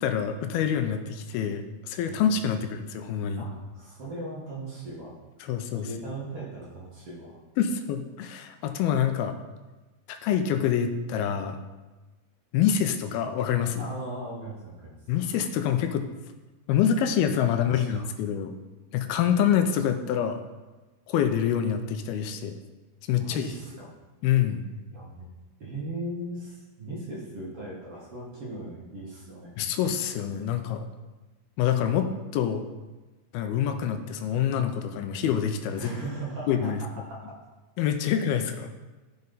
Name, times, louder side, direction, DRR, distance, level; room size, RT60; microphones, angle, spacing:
voice 1, 0.0-3.5 5.4-5.9 7.6-9.4 10.1-11.6 12.5-13.8 15.1-16.1 16.7-18.6 18.9-20.4 21.1-22.6 23.1-23.5 24.2-24.6 29.6-30.9 31.6-32.6 33.3-35.9 36.5-36.8 37.8-38.7, left 9 dB, 85° left, 6 dB, 2.6 m, -26 dB
voice 2, 2.1-2.7 3.3-5.1 5.4-7.4 13.8-15.0 17.5-18.1 23.2-23.9 24.9-25.3 25.6-29.8 35.8-37.4, right 2 dB, 45° right, -5 dB, 2.3 m, -38 dB
14.5 x 5.3 x 4.1 m, 1.2 s
omnidirectional pair, 4.4 m